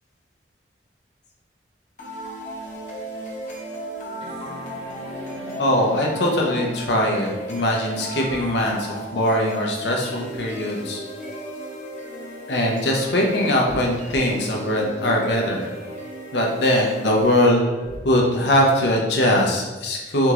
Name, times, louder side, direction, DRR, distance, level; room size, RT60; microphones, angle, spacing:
sound 1, 2.0-18.0, right 1 dB, 45° left, 0.9 m, -35 dB
sound 2, 4.2-6.7 8.4-8.5, equal, 30° right, 0.8 m, -39 dB
voice 1, 5.6-11.0 12.5-15.7 16.3-20.3, left 1 dB, 80° left, -1 dB, 0.8 m, -21 dB
3.6 x 3.5 x 3.0 m, 1.2 s
head